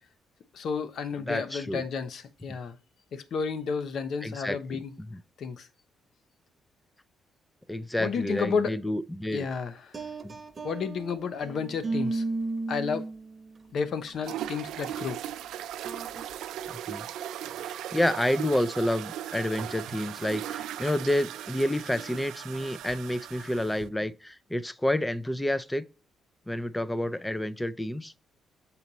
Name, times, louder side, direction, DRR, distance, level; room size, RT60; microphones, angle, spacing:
voice 1, 0.5-2.7 3.1-4.9 5.4-5.7 8.0-8.7 9.3-10.0 10.6-12.2 12.7-13.1 13.7-15.2, left 5 dB, 65° left, 0.9 m, -31 dB
voice 2, 1.3-1.8 4.2-5.2 7.7-9.5 10.2-10.3 16.7-17.1 17.6-25.9 26.5-28.1, left 1 dB, 10° left, 0.6 m, -29 dB
sound 1, 9.9-13.5 14.1-14.3 14.8-15.1 15.8-16.2, right 3 dB, 30° right, 1.1 m, -34 dB
sound 2, 14.2-23.9, right 11 dB, 85° right, 0.5 m, -38 dB
7.0 x 4.2 x 4.1 m
cardioid pair, 90°, 0 cm